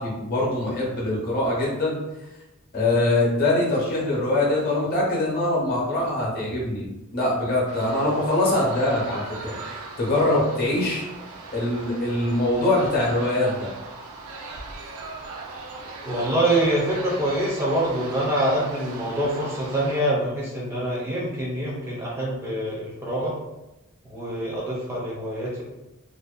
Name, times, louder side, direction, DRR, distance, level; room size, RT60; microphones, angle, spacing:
voice 1, 0.0-2.0 2.7-9.5 10.0-11.0 11.5-13.7, left 2 dB, 45° left, -4 dB, 0.7 m, -23 dB
sound 1, 7.7-20.0, right 3 dB, 80° right, 0.4 m, -39 dB
voice 2, 16.0-23.3 24.0-25.6, right 1 dB, 10° right, -5 dB, 0.4 m, -25 dB
2.5 x 2.1 x 2.3 m, 0.99 s
head